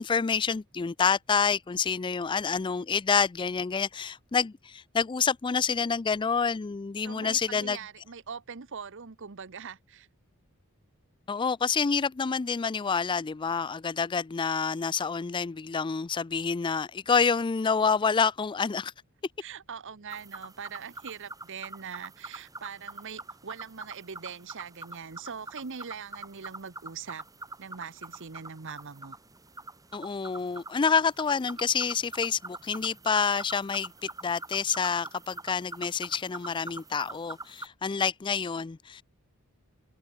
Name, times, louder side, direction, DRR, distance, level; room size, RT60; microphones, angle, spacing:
voice 1, 0.0-7.8 11.3-18.9 29.9-39.0, left 5 dB, 20° left, 0.3 m, -28 dB
voice 2, 7.0-10.1 19.4-27.2 27.6-29.2, right 6 dB, 55° right, 0.9 m, -42 dB
sound 1, 20.1-37.7, right 2 dB, 15° right, 3.6 m, -44 dB
open air
head